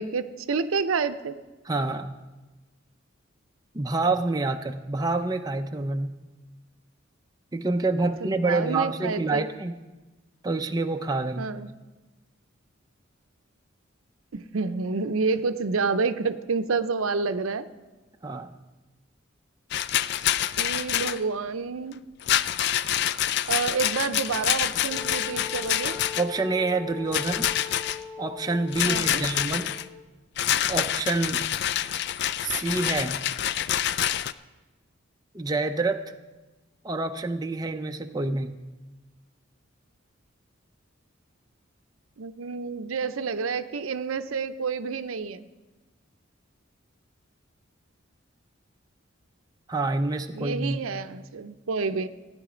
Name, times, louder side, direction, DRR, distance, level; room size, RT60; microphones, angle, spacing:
voice 1, 0.0-1.4 5.2-5.3 8.2-9.5 11.4-11.7 14.3-17.7 20.6-22.0 23.5-26.0 28.8-29.2 42.2-45.5 50.3-52.1, right 4 dB, 85° right, 12 dB, 0.6 m, -29 dB
voice 2, 1.7-2.1 3.7-6.1 7.5-9.8 10.4-11.5 18.2-18.5 26.2-27.5 28.2-29.7 30.7-31.4 32.4-33.2 35.3-36.1 36.8-38.6 49.7-50.8, right 3 dB, 20° right, 5 dB, 0.5 m, -27 dB
Rattle, 19.7-21.2 22.2-26.4 27.1-28.0 28.7-29.8 30.4-34.3, left 11 dB, 55° left, 0.3 m, -27 dB
Wind instrument woodwind instrument, 24.9-30.0, left 7 dB, 10° left, 1.3 m, -40 dB
15.5 x 9.9 x 5.0 m, 1.2 s
head